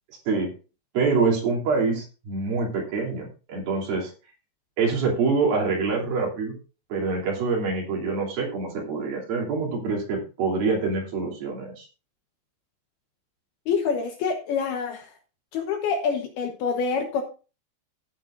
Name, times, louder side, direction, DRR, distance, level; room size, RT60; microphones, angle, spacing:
voice 1, 0.9-4.1 4.8-6.6 6.9-11.9, right 4 dB, 55° right, -1 dB, 4.4 m, -25 dB
voice 2, 13.7-15.1 15.5-17.2, left 5 dB, 70° left, 5 dB, 2.6 m, -26 dB
15.0 x 9.2 x 2.5 m, 0.33 s
omnidirectional pair, 5.4 m